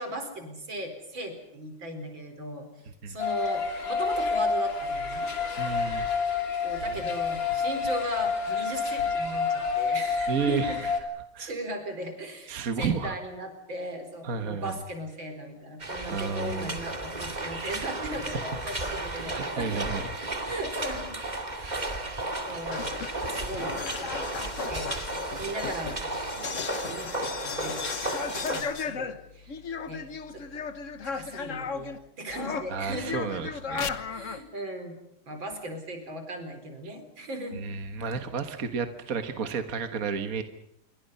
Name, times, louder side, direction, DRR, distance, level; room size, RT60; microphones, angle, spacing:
voice 1, 0.0-2.7 3.1-5.3 6.6-10.8 11.4-19.8 20.4-21.2 21.5-22.2 22.4-22.9 23.3-24.3 24.7-25.0 25.4-29.6 29.9-30.0 30.3-30.7 31.0-33.3 34.1-35.0 35.3-37.6, right 1 dB, 70° right, 6 dB, 5.1 m, -38 dB
sound 1, 3.2-11.0, left 5 dB, 70° left, 3.9 m, -28 dB
voice 2, 5.6-6.1 10.3-10.9 11.3-11.5 12.5-13.2 14.2-14.8 16.1-16.8 18.1-18.2 19.1-20.0 21.6-21.9 32.7-34.0 36.8-36.9 37.5-40.4, right 5 dB, 45° right, 7 dB, 1.8 m, -32 dB
sound 2, 15.8-28.6, right 2 dB, 20° right, 2.3 m, -34 dB
sound 3, 22.6-32.0 32.3-34.4, left 6 dB, 45° left, 1.3 m, -35 dB
27.5 x 24.0 x 5.6 m, 0.80 s
omnidirectional pair, 2.2 m